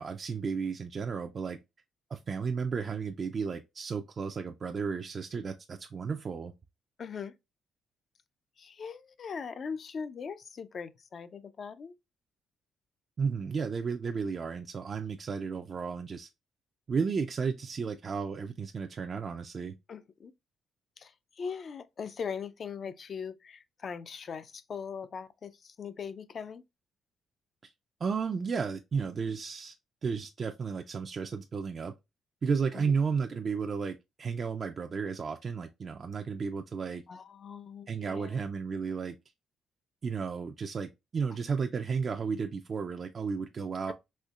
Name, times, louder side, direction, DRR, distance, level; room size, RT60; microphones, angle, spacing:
voice 1, 0.0-1.6 2.1-6.5 13.2-16.3 16.9-19.7 28.0-29.7 30.0-31.9 32.4-37.0 37.9-39.2 40.0-43.9, right 5 dB, 45° right, 0.3 m, -33 dB
voice 2, 7.0-7.3 8.6-11.9 19.9-20.3 21.0-26.6 32.7-32.9 37.1-38.4 43.9-44.0, left 6 dB, 50° left, 0.4 m, -40 dB
4.3 x 2.8 x 2.3 m
cardioid pair, 90°, 0 cm